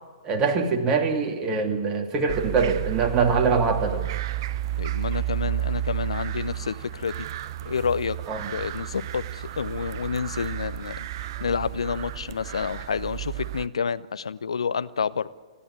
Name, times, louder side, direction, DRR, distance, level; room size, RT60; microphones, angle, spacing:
voice 1, 0.2-4.1 8.3-8.5, right 5 dB, 25° right, 4 dB, 2.5 m, -23 dB
sound 1, 2.3-13.7, right 13 dB, 45° right, 0.7 m, -32 dB
voice 2, 4.8-7.3 7.6-8.2 8.5-15.3, left 6 dB, 70° left, 15 dB, 0.8 m, -29 dB
29.5 x 11.0 x 9.8 m, 1.3 s
figure-of-eight pair, 110°, 3 cm